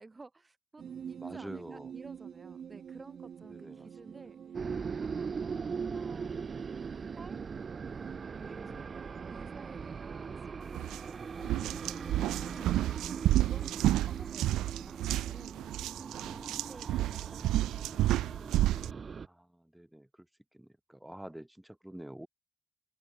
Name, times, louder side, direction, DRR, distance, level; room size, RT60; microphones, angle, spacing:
voice 1, 0.0-4.6 5.0-5.7 5.9-7.4 7.7-9.0 9.3-12.8 13.4-15.6 16.0-18.2, right 3 dB, 25° right, 7.2 m, -54 dB
sound 1, 0.8-16.9, right 8 dB, 55° right, 5.1 m, -49 dB
voice 2, 1.2-1.9 3.5-4.2 8.5-8.9 19.2-20.1 20.5-22.3, right 1 dB, 5° right, 3.0 m, -47 dB
sound 2, 4.5-19.3, right 5 dB, 40° right, 0.5 m, -40 dB
sound 3, 10.8-11.0 11.4-18.9, right 15 dB, 90° right, 0.8 m, -30 dB
open air
cardioid pair, 90°, 0 cm